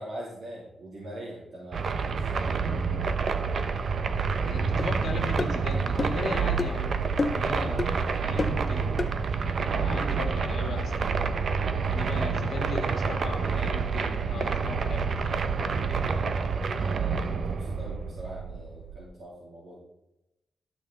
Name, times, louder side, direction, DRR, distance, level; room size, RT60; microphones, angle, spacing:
voice 1, 0.0-2.6 7.4-7.7 16.8-19.8, right 1 dB, 80° right, -6 dB, 3.0 m, -42 dB
sound 1, 1.7-19.0, right 5 dB, 60° right, 0.7 m, -28 dB
voice 2, 4.4-7.9 8.2-9.1 9.7-15.2, left 3 dB, 65° left, 1 dB, 2.0 m, -38 dB
sound 2, 4.8-4.9 5.4-5.5 6.0-6.2 6.6-6.7 7.2-7.5 7.8-7.9 8.4-8.6 9.0-9.1, left 3 dB, 35° left, 0.7 m, -29 dB
12.5 x 6.3 x 3.9 m, 0.90 s
cardioid pair, 110°, 0 cm